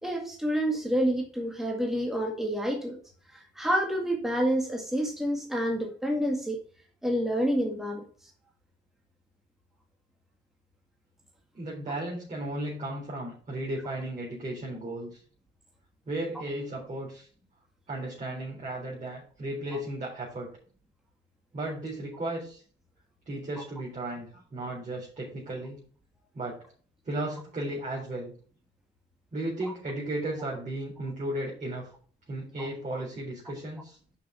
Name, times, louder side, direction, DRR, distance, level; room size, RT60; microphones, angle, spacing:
voice 1, 0.0-3.0 3.3-6.6 7.0-8.0 29.6-29.7 32.6-32.7, equal, ahead, 2.0 m, -28 dB
voice 2, 11.5-15.2 16.1-17.3 17.9-20.5 21.5-22.6 23.3-25.8 26.3-26.6 27.0-28.3 29.3-31.9 32.3-34.0, right 1 dB, 40° right, 4.1 m, -35 dB
6.8 x 5.4 x 7.0 m
cardioid pair, 90°, 20 cm